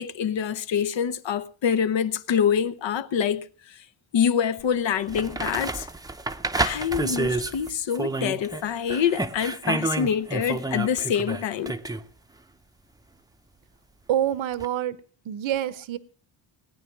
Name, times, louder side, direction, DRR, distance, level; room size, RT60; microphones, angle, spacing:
voice 1, 0.0-3.8 4.1-5.9 6.6-11.7, left 8 dB, 70° left, 1.0 m, -26 dB
sound 1, 4.6-4.7 5.1-8.6 8.9-12.1 14.6-14.7, right 2 dB, 10° right, 0.6 m, -29 dB
voice 2, 14.1-15.0 15.2-16.0, right 11 dB, 80° right, 1.0 m, -26 dB
19.0 x 9.6 x 6.0 m
cardioid pair, 115°, 46 cm